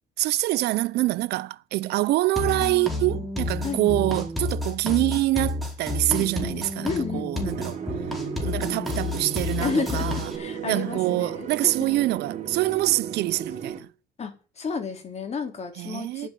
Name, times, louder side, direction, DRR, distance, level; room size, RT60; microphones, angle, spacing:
voice 1, 0.2-7.8 8.4-10.3 10.7-13.9 15.8-16.3, right 17 dB, 80° right, 0.6 m, -25 dB
sound 1, 2.4-10.4, left 2 dB, ahead, 4.4 m, -30 dB
voice 2, 6.1-6.4 6.8-7.6 9.6-11.7 14.2-16.3, left 5 dB, 40° left, 3.8 m, -31 dB
sound 2, 7.4-13.8, right 8 dB, 45° right, 3.1 m, -35 dB
10.0 x 7.9 x 9.4 m
cardioid pair, 110°, 17 cm